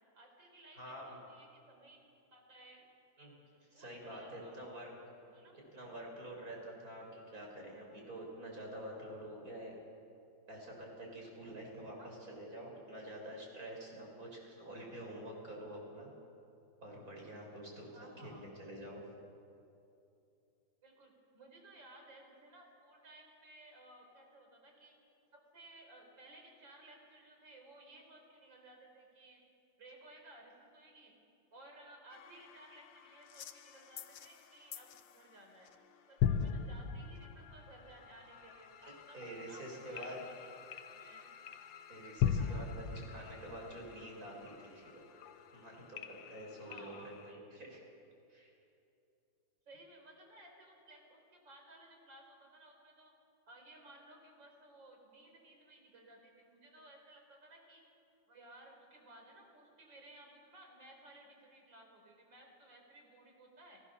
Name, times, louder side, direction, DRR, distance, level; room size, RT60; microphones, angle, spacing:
voice 1, 0.1-2.9 3.7-4.6 5.3-5.6 12.0-12.3 17.9-18.5 20.8-25.0 25.3-29.4 29.8-31.1 31.5-35.7 36.1-39.2 39.5-41.3 42.3-42.7 46.6-47.3 49.7-53.1 53.5-57.8 58.3-63.8, right 1 dB, 65° right, 2 dB, 4.9 m, -58 dB
voice 2, 0.7-1.2 3.2-3.3 3.7-4.9 5.7-9.7 10.5-16.1 16.8-19.0 38.8-40.2 41.9-45.1 45.5-47.8 48.3-48.5, right 1 dB, 45° right, -1 dB, 5.8 m, -48 dB
sound 1, 32.1-35.4 35.6-35.9 36.2-47.3, left 8 dB, 70° left, 1.6 m, -41 dB
30.0 x 18.5 x 6.9 m, 2.7 s
omnidirectional pair, 2.1 m